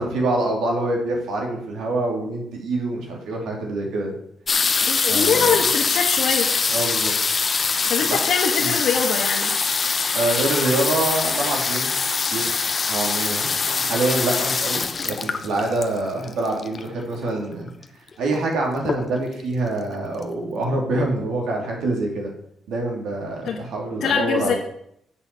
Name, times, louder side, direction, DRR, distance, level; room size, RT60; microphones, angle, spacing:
voice 1, 0.0-4.1 5.1-5.6 6.7-7.1 8.0-8.2 8.6-8.8 10.1-12.0 12.3-12.5 12.9-17.7 18.2-22.3 22.7-24.5, right 2 dB, 80° right, 0 dB, 2.8 m, -25 dB
sound 1, 4.5-17.0 17.8-17.9 18.1-18.5 18.8-19.4 19.9-20.0 20.2-20.3, left 4 dB, 35° left, 0.9 m, -23 dB
voice 2, 4.9-6.5 7.9-9.5 23.4-23.6 24.0-24.5, left 6 dB, 70° left, -1 dB, 1.3 m, -23 dB
8.0 x 6.3 x 6.7 m, 0.73 s
cardioid pair, 90°, 0 cm